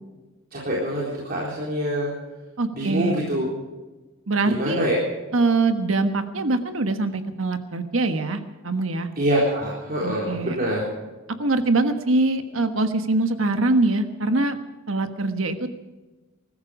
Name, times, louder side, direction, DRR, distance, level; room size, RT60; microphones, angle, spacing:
voice 1, 0.5-2.1 2.8-3.5 4.5-5.0 9.2-10.9, equal, 45° right, -5 dB, 3.8 m, -25 dB
voice 2, 2.6-3.2 4.3-4.8 5.3-9.1 10.0-10.6 11.4-14.6 14.9-15.7, right 2 dB, 75° right, 8 dB, 1.4 m, -23 dB
21.0 x 13.5 x 5.0 m, 1.2 s
head